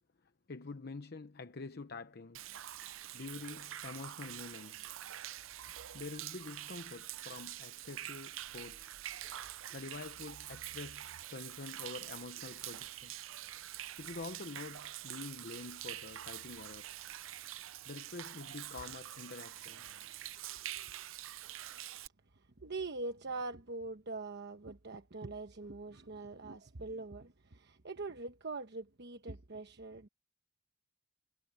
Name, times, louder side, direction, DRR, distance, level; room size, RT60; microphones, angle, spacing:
voice 1, 0.2-2.5 2.8-5.0 5.9-9.0 9.7-13.2 14.0-17.0 17.9-19.9 25.6-25.7, left 3 dB, 55° left, 0.9 m, -47 dB
Human voice / Rain / Stream, 2.3-22.1, right 13 dB, 80° right, 0.6 m, -46 dB
voice 2, 22.6-30.1, right 3 dB, 55° right, 1.1 m, -43 dB
head